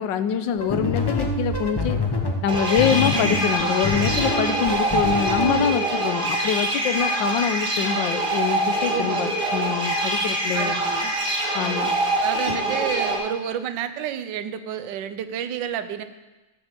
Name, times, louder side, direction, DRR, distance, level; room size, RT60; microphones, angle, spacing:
voice 1, 0.0-2.0 2.4-10.7 11.5-11.9 12.5-12.6, left 9 dB, 75° left, 11 dB, 1.3 m, -25 dB
sound 1, 0.5-5.7, left 2 dB, 20° left, 0.6 m, -26 dB
sound 2, 2.5-13.2, right 1 dB, 30° right, 1.6 m, -24 dB
voice 2, 8.9-9.4 10.5-11.1 11.5-16.0, right 9 dB, 70° right, 11 dB, 1.3 m, -30 dB
13.0 x 7.1 x 6.7 m, 1.1 s
omnidirectional pair, 2.2 m